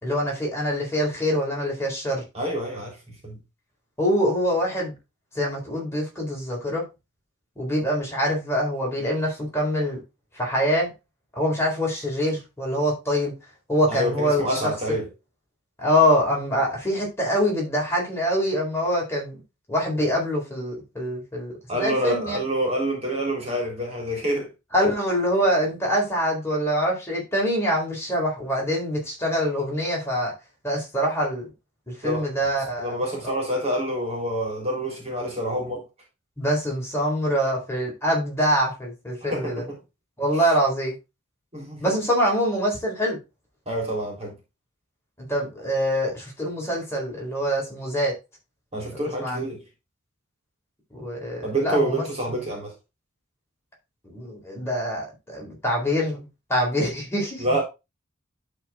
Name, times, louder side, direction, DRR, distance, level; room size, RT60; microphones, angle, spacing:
voice 1, 0.0-2.2 4.0-4.9 5.3-6.8 7.6-10.0 10.3-10.9 11.4-13.3 13.7-14.6 15.8-19.4 19.7-22.4 24.7-30.3 30.6-31.4 32.0-32.9 33.2-33.4 36.4-39.6 40.2-40.9 41.8-43.2 45.2-48.1 49.2-49.4 50.9-52.0 54.0-57.4, equal, 15° left, 4.2 m, -24 dB
voice 2, 2.3-3.4 13.9-15.1 21.7-24.5 32.0-32.3 32.8-35.8 39.3-39.8 41.5-41.8 43.7-44.3 48.7-49.6 51.4-52.7 57.4-57.6, right 1 dB, 30° right, 3.7 m, -27 dB
11.5 x 4.6 x 3.7 m
head